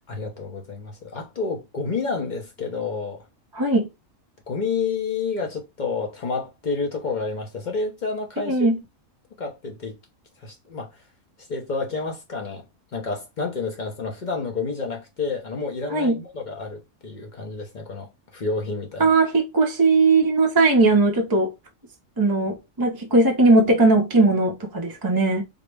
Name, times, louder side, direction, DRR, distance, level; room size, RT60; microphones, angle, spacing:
voice 1, 0.1-3.2 4.5-8.7 9.4-10.0 10.4-10.9 11.5-12.6 12.9-19.1, left 4 dB, 45° left, 0.7 m, -29 dB
voice 2, 3.5-3.9 8.4-8.8 15.9-16.2 19.0-21.5 22.2-25.4, right 3 dB, 30° right, 0.4 m, -19 dB
3.9 x 2.0 x 3.3 m
omnidirectional pair, 1.3 m